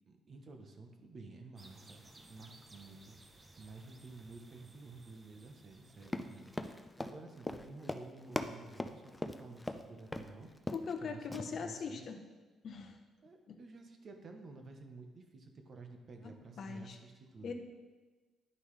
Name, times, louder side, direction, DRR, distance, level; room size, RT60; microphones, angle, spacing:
voice 1, 0.1-10.5 11.0-12.2 13.2-17.5, right 3 dB, 50° right, 4 dB, 1.0 m, -52 dB
sound 1, 1.6-6.9, right 2 dB, 25° right, 0.7 m, -60 dB
Run, 6.0-9.8 10.1-10.3 10.6-11.0 11.3-11.4, left 1 dB, 10° left, 0.5 m, -39 dB
voice 2, 10.7-12.2 12.6-13.0 13.5-13.6 16.6-17.0 17.4-17.5, left 5 dB, 60° left, 6 dB, 0.8 m, -41 dB
9.8 x 5.4 x 3.2 m, 1.3 s
cardioid pair, 90°, 0 cm